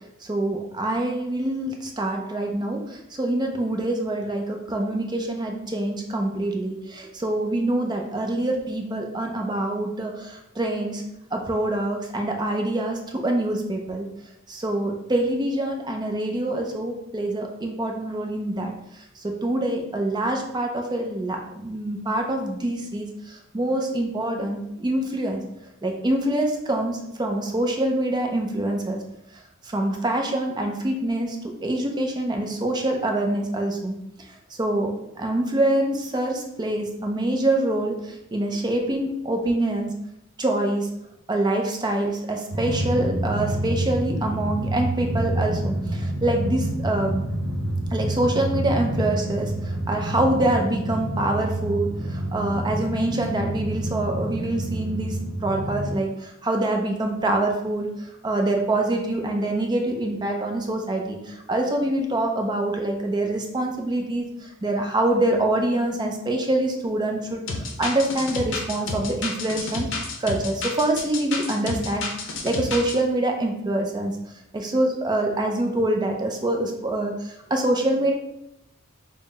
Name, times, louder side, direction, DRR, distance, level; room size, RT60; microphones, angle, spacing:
voice 1, 0.2-11.0 11.3-14.1 14.5-18.7 19.2-25.4 25.8-29.0 29.6-31.4 31.6-34.0 34.6-40.0 40.4-40.9 41.3-47.2 47.9-57.9 58.2-69.9 70.2-74.1 74.5-78.1, right 1 dB, 20° right, 2 dB, 0.4 m, -25 dB
Drum, 42.5-55.9, right 1 dB, 55° right, 0.9 m, -28 dB
sound 1, 67.5-73.0, left 3 dB, 60° left, 0.6 m, -30 dB
4.0 x 2.0 x 4.0 m, 0.81 s
head